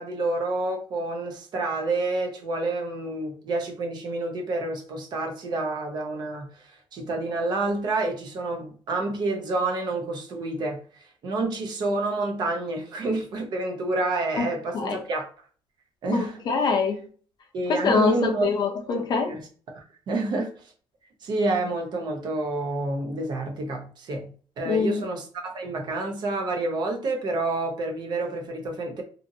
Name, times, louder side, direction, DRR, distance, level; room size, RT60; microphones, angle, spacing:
voice 1, 0.0-15.3 16.0-16.4 17.5-18.5 18.9-19.4 19.7-20.5 21.2-29.0, right 2 dB, 50° right, 0.7 m, -29 dB
voice 2, 16.1-17.0 17.7-19.3 24.7-25.0, left 5 dB, 50° left, 0.7 m, -24 dB
2.6 x 2.6 x 2.6 m
cardioid pair, 130°, 9 cm